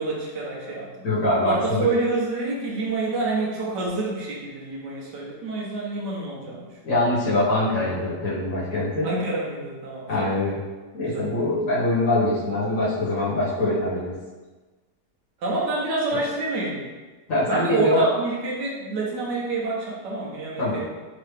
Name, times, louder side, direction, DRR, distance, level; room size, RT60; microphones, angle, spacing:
voice 1, 0.0-1.1 1.4-6.7 9.0-10.4 11.0-11.3 15.4-16.9 17.5-20.9, right 3 dB, 80° right, -4 dB, 1.6 m, -27 dB
voice 2, 1.0-1.9 6.8-9.1 10.1-10.6 10.9-14.2 17.3-18.0 20.6-20.7, left 2 dB, 50° left, -9 dB, 1.6 m, -23 dB
4.6 x 2.9 x 3.3 m, 1.3 s
omnidirectional pair, 1.8 m